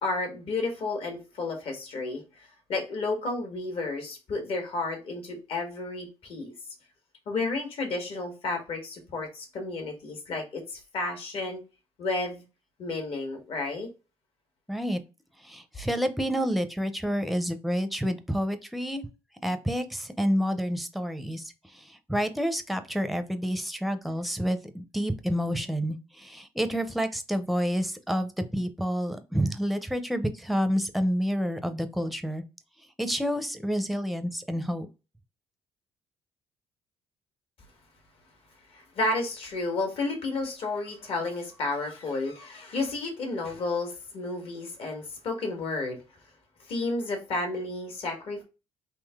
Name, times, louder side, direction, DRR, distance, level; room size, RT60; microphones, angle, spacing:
voice 1, 0.0-6.5 7.3-11.6 12.0-12.4 12.8-13.9 38.7-46.0 46.7-48.4, left 3 dB, 60° left, 1.5 m, -32 dB
voice 2, 14.7-15.0 15.4-19.1 19.4-32.4 33.0-34.9, equal, ahead, 0.6 m, -29 dB
3.7 x 2.9 x 3.4 m
cardioid pair, 100°, 11 cm